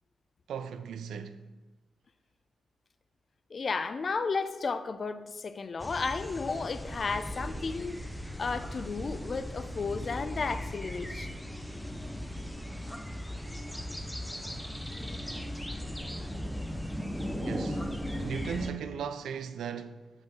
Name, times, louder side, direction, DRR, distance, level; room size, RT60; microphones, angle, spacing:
voice 1, 0.5-1.4 17.4-17.8 18.1-20.1, right 7 dB, 85° right, 0.4 m, -37 dB
voice 2, 3.5-8.0 8.4-11.3, left 4 dB, 50° left, 0.4 m, -33 dB
sound 1, 5.8-18.7, equal, 5° left, 0.6 m, -37 dB
5.9 x 5.4 x 3.6 m
cardioid pair, 60°, 0 cm